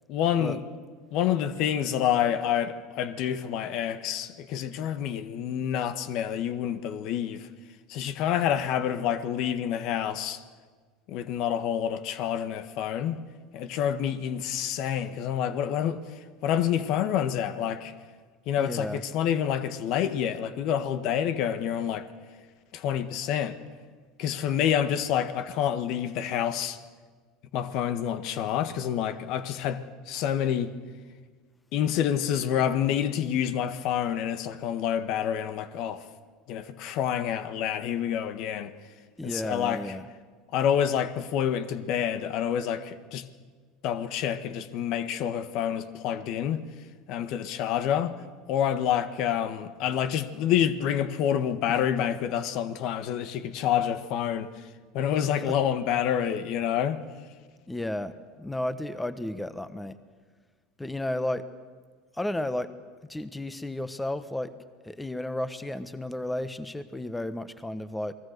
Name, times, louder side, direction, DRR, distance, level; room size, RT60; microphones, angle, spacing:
voice 1, 0.1-0.6 1.1-7.5 7.9-10.4 11.1-13.2 13.5-16.0 16.4-17.9 18.5-22.1 22.7-23.6 24.2-26.8 27.5-30.7 31.7-36.0 36.5-38.7 39.2-39.9 40.5-43.2 43.8-46.6 47.1-48.1 48.5-54.5 54.9-57.0, left 9 dB, 60° left, 1.5 m, -28 dB
voice 2, 18.6-19.0 39.2-40.1 55.4-55.5 57.7-60.0 60.8-61.5 62.1-62.7 63.1-64.5 64.8-68.1, left 1 dB, 10° left, 1.3 m, -33 dB
29.0 x 20.0 x 6.7 m
hypercardioid pair, 90°, 0 cm